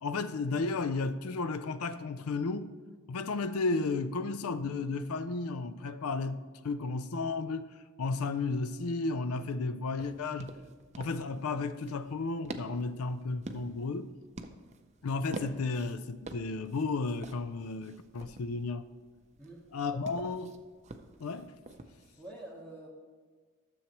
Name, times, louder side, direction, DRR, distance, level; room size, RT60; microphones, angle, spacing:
voice 1, 0.0-2.7 3.1-6.4 6.6-10.5 11.0-14.1 15.0-18.9 19.7-20.5 21.2-21.5, left 3 dB, 85° left, 0.5 m, -33 dB
sound 1, 10.0-22.3, right 2 dB, 30° right, 0.5 m, -48 dB
voice 2, 19.4-20.0 22.2-22.9, right 1 dB, 5° left, 1.1 m, -48 dB
12.5 x 7.2 x 3.0 m
head